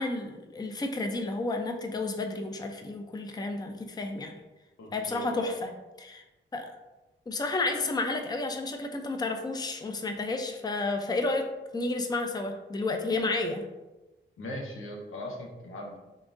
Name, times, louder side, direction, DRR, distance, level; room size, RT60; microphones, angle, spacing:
voice 1, 0.0-4.3 4.9-5.7 6.0-6.2 6.5-6.7 7.3-11.5 11.7-13.7, left 2 dB, 20° left, 5 dB, 0.4 m, -31 dB
voice 2, 4.8-5.6 14.4-16.0, left 1 dB, 90° left, 0 dB, 0.8 m, -39 dB
3.7 x 3.5 x 2.5 m, 1.1 s
cardioid pair, 65°, 21 cm